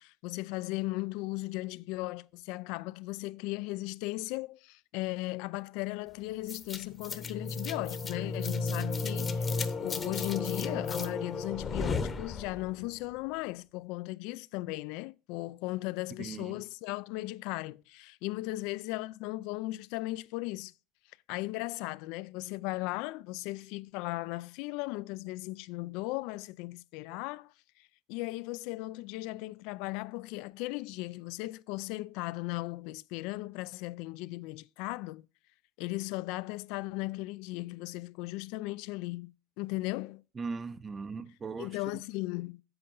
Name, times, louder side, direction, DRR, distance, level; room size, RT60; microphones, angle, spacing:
voice 1, 0.0-20.7 21.3-35.2 35.8-40.2 41.6-42.6, left 20 dB, 70° left, 0.3 m, -37 dB
sound 1, 6.5-12.8, left 4 dB, 25° left, 0.9 m, -34 dB
voice 2, 16.2-16.6 27.1-27.2 40.3-42.0, right 4 dB, 20° right, 0.6 m, -39 dB
8.8 x 7.8 x 3.8 m
cardioid pair, 135°, 0 cm